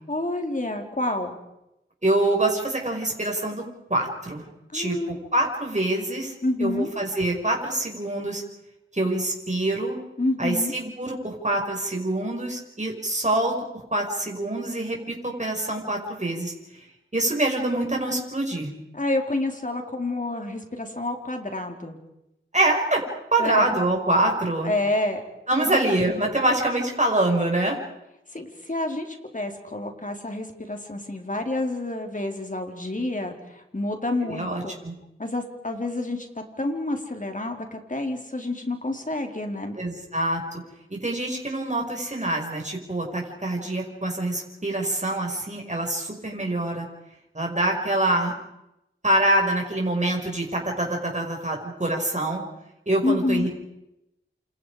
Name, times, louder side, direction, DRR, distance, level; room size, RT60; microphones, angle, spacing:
voice 1, 0.1-1.4 4.7-5.2 6.4-6.9 10.2-10.7 18.9-22.0 23.4-23.7 24.6-25.2 25.6-25.8 28.3-34.8 35.2-39.7 53.0-53.5, left 2 dB, 40° left, 4 dB, 4.2 m, -28 dB
voice 2, 2.0-3.6 3.9-4.4 4.7-4.9 5.3-6.3 6.6-8.4 8.9-10.0 10.4-16.5 17.1-18.7 22.5-23.0 23.3-24.7 25.5-27.8 34.2-34.9 39.8-40.6 40.9-46.9 47.3-48.3 49.0-52.4 52.9-53.5, right 1 dB, 35° right, 1 dB, 5.9 m, -25 dB
29.0 x 28.0 x 5.1 m, 0.88 s
wide cardioid pair, 45°, 21 cm